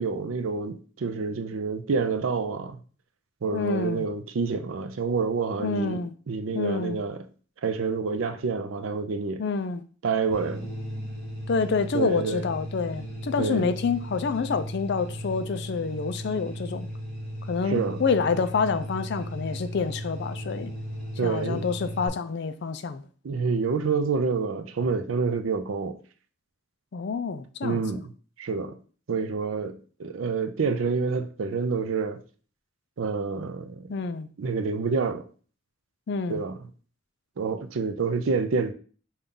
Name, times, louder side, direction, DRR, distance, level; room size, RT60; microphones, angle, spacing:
voice 1, 0.0-2.8 3.4-7.2 7.6-9.4 10.0-10.7 11.9-12.4 13.4-13.7 17.7-18.0 21.2-21.7 23.2-25.9 27.6-28.1 28.4-28.8 29.1-32.2 33.0-33.9 34.4-35.2 36.3-36.6 37.4-38.7, right 4 dB, 75° right, 0.5 m, -28 dB
voice 2, 3.5-4.1 5.6-6.1 6.5-7.0 9.4-9.8 11.5-16.9 17.5-20.7 21.2-23.1 26.9-27.8 33.9-34.3 36.1-36.4, left 5 dB, 55° left, 0.4 m, -28 dB
sound 1, 10.3-22.1, equal, 10° left, 2.0 m, -36 dB
5.3 x 2.3 x 3.7 m
head